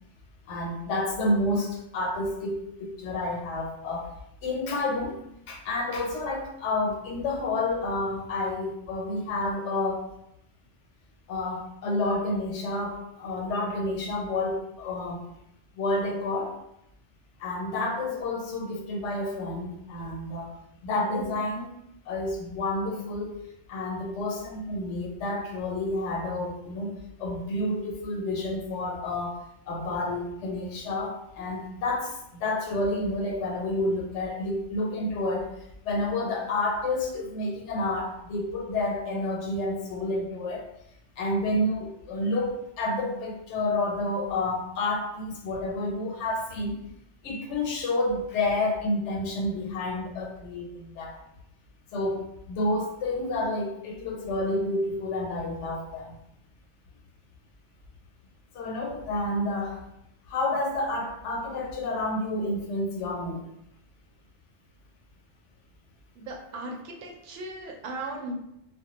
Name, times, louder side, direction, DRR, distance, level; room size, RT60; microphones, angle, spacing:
voice 1, 0.5-4.1 4.4-5.2 5.5-10.1 11.3-15.3 15.8-16.5 17.4-20.5 20.8-21.7 22.1-23.4 23.7-26.9 27.2-29.4 29.7-35.5 35.8-40.7 41.2-46.8 47.2-51.2 51.9-56.2 58.5-59.8 60.3-63.4, left 2 dB, 85° left, 1 dB, 0.9 m, -29 dB
voice 2, 66.2-68.3, right 2 dB, 85° right, 0 dB, 0.9 m, -37 dB
2.2 x 2.1 x 2.8 m, 0.79 s
omnidirectional pair, 1.2 m